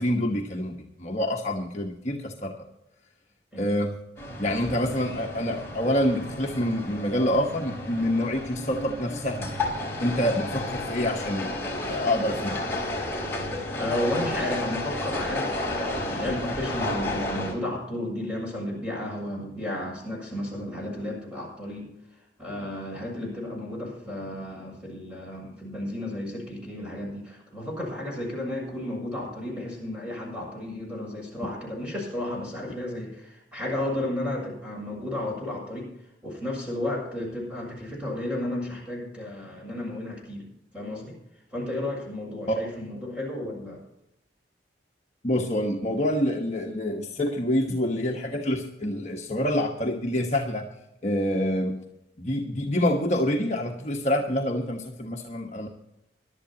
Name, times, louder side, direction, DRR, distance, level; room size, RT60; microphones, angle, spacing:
voice 1, 0.0-2.5 3.6-3.9 4.4-9.5 10.0-11.5 11.9-12.6 42.5-42.6 45.2-50.7 51.0-51.8 52.2-55.7, left 1 dB, 40° left, 0 dB, 1.2 m, -27 dB
sound 1, 4.2-17.5, left 1 dB, 15° left, 3.6 m, -32 dB
voice 2, 13.8-21.9 22.4-35.9 36.2-41.2 41.5-43.8, left 1 dB, 5° right, -3 dB, 6.8 m, -33 dB
22.0 x 12.0 x 2.9 m, 0.83 s
head